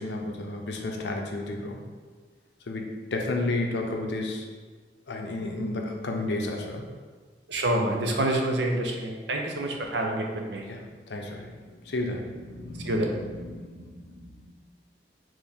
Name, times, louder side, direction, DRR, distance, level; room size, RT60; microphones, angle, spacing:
voice 1, 0.0-1.8 2.7-4.5 5.1-6.8 10.6-14.5, left 2 dB, 70° left, 2 dB, 0.6 m, -32 dB
voice 2, 7.5-10.6 12.8-13.1, right 1 dB, 75° right, 2 dB, 0.6 m, -27 dB
4.4 x 3.0 x 3.5 m, 1.4 s
head